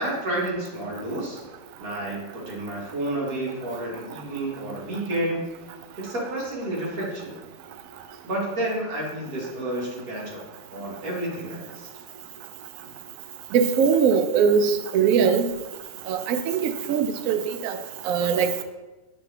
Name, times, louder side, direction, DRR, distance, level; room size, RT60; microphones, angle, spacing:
voice 1, 0.0-1.4 1.8-5.4 6.0-7.3 8.2-10.4 10.7-11.9, right 1 dB, 55° right, -4 dB, 1.9 m, -30 dB
voice 2, 13.5-14.6 14.9-15.4 16.1-16.6 16.9-17.4 18.1-18.5, right 7 dB, 70° right, 8 dB, 0.8 m, -20 dB
7.1 x 4.2 x 3.3 m, 1.1 s
omnidirectional pair, 1.9 m